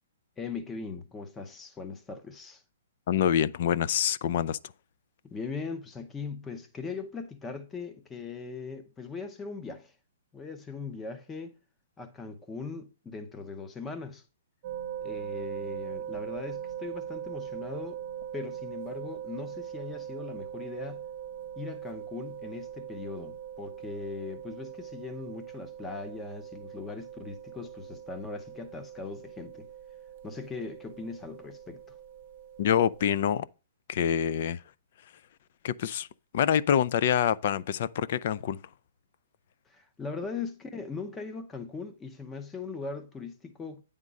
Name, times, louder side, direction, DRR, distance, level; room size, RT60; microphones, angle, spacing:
voice 1, 0.4-2.6 5.3-9.9 10.3-11.5 12.0-14.2 15.0-18.0 18.3-21.0 21.6-29.7 30.2-32.0 39.7-43.8, left 4 dB, 10° left, 0.7 m, -39 dB
voice 2, 3.1-4.6 32.6-33.5 33.9-34.6 35.6-36.1 36.3-38.6, left 9 dB, 50° left, 0.3 m, -26 dB
sound 1, 14.6-33.1, right 10 dB, 35° right, 0.6 m, -41 dB
9.2 x 3.6 x 5.2 m
hypercardioid pair, 160°, 0 cm